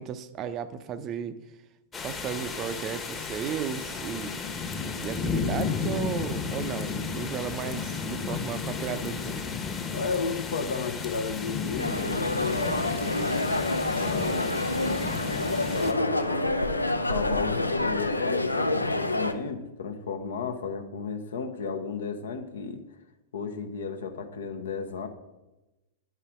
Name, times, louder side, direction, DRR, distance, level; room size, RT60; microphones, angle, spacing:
voice 1, 0.0-1.4 2.0-4.4 5.0-9.5, right 8 dB, 30° right, 13 dB, 0.5 m, -34 dB
sound 1, 1.9-15.9, left 5 dB, 20° left, 1.1 m, -33 dB
voice 2, 9.9-12.9 14.0-14.5 15.7-16.6 17.1-22.8 23.3-25.1, left 5 dB, 65° left, 8 dB, 0.8 m, -33 dB
sound 2, 11.8-19.3, left 2 dB, 85° left, 0.5 m, -27 dB
Cough, 14.8-15.9 16.2-16.3 16.8-16.9 17.5-17.6, left 9 dB, 35° left, 0.6 m, -49 dB
10.5 x 5.5 x 3.7 m, 1.0 s
figure-of-eight pair, 95°, 0 cm